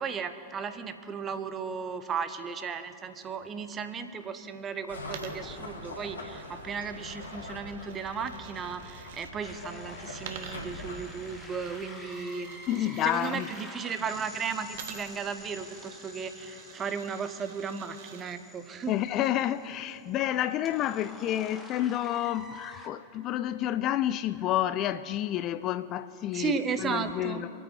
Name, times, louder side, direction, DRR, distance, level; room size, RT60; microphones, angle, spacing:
voice 1, 0.0-19.0 26.3-27.5, right 6 dB, 25° right, 0.9 m, -35 dB
sound 1, 4.9-11.0, left 2 dB, 80° left, 2.8 m, -43 dB
Coin (dropping), 5.0-9.3 10.2-13.7 14.7-18.4, right 7 dB, 55° right, 1.2 m, -49 dB
sound 2, 9.4-22.9, left 2 dB, 5° left, 1.6 m, -48 dB
voice 2, 12.7-13.5 18.9-27.5, left 12 dB, 35° left, 0.4 m, -29 dB
26.5 x 8.9 x 4.5 m
figure-of-eight pair, 90°, 0 cm